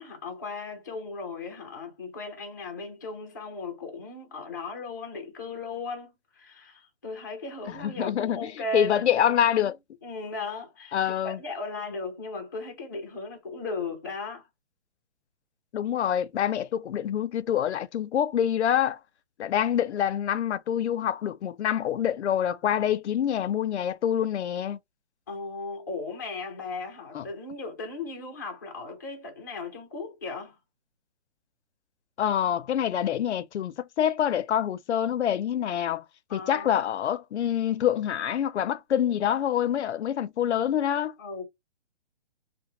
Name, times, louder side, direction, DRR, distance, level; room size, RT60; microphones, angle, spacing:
voice 1, 0.0-9.6 10.0-14.5 25.3-30.6 36.3-36.9 41.2-41.4, left 3 dB, 20° left, 0.4 m, -37 dB
voice 2, 7.7-9.8 10.9-11.4 15.7-19.0 19.4-24.8 27.1-27.2 32.2-36.0 36.3-41.1, left 10 dB, 80° left, 0.5 m, -26 dB
2.8 x 2.0 x 3.0 m
hypercardioid pair, 165°, 33 cm